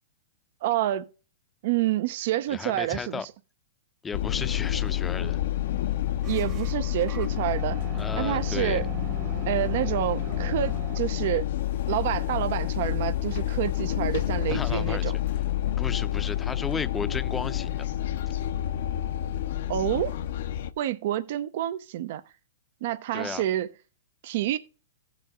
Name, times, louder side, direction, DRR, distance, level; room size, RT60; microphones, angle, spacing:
voice 1, 0.6-1.1 1.6-3.2 6.2-7.8 8.1-8.9 9.5-11.5 11.9-15.1 19.7-20.1 20.8-22.2 22.8-23.7 24.2-24.6, right 13 dB, 55° right, 0.7 m, -28 dB
voice 2, 2.5-3.3 4.0-5.4 8.0-8.8 14.5-15.1 15.8-17.9 23.1-23.4, left 5 dB, 15° left, 0.7 m, -34 dB
sound 1, 4.1-20.7, left 12 dB, 60° left, 0.7 m, -29 dB
sound 2, 6.2-11.2, right 6 dB, 30° right, 1.2 m, -40 dB
15.5 x 5.3 x 3.7 m
hypercardioid pair, 140°, 0 cm